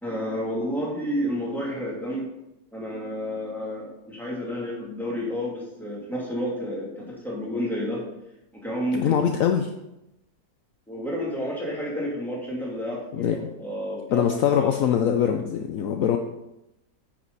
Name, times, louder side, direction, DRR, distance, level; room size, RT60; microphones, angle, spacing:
voice 1, 0.0-2.3 2.7-8.0 8.5-9.4 10.9-14.3 14.5-14.7, equal, ahead, -5 dB, 2.6 m, -30 dB
voice 2, 8.9-9.7 13.1-13.4 14.1-16.2, left 9 dB, 70° left, 5 dB, 1.0 m, -23 dB
9.5 x 6.2 x 4.1 m, 0.88 s
omnidirectional pair, 1.7 m